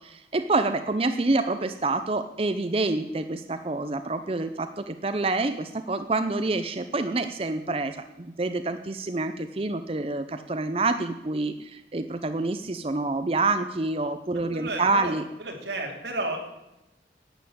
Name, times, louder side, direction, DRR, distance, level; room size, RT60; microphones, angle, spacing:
voice 1, 0.0-15.3, right 3 dB, 35° right, 9 dB, 0.6 m, -27 dB
voice 2, 14.5-15.1 15.4-16.4, right 2 dB, 85° right, 2 dB, 2.9 m, -32 dB
11.5 x 9.2 x 8.7 m, 0.96 s
head